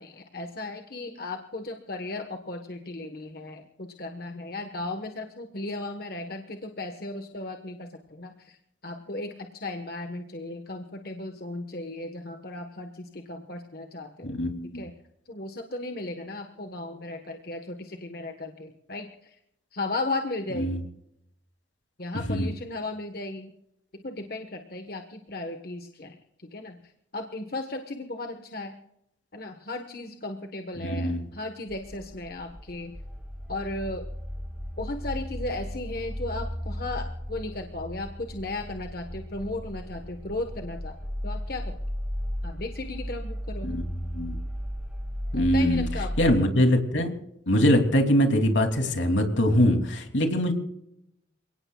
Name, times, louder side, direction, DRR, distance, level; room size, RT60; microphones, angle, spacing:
voice 1, 0.0-8.6 8.8-14.9 15.3-19.3 19.7-20.8 22.0-23.5 23.9-26.8 27.1-28.8 29.3-32.9 33.5-34.1 34.8-41.0 41.2-41.8 42.4-43.8 45.3-46.5 47.5-47.6, left 2 dB, 50° left, 5 dB, 1.3 m, -36 dB
voice 2, 14.2-14.8 20.6-20.8 22.3-22.5 30.8-31.2 43.6-43.8 44.1-44.4 45.3-45.9 46.2-47.1 47.5-50.5, equal, 80° left, 4 dB, 3.0 m, -23 dB
sound 1, 31.7-46.4, equal, 5° right, 2.2 m, -35 dB
28.5 x 18.0 x 2.4 m, 0.80 s
head